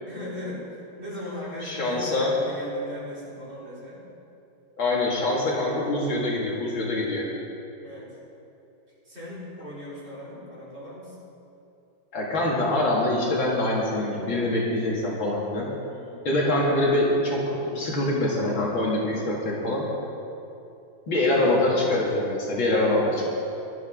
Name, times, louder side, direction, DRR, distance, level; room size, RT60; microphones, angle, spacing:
voice 1, 0.1-0.7 1.0-4.0 7.8-8.1 9.0-11.1 15.9-16.3, equal, 30° right, -8 dB, 4.2 m, -38 dB
voice 2, 1.6-2.3 4.8-7.3 12.1-15.7 16.2-19.8 21.1-23.3, left 1 dB, 70° left, -4 dB, 3.0 m, -24 dB
18.0 x 12.0 x 3.8 m, 2.8 s
omnidirectional pair, 2.3 m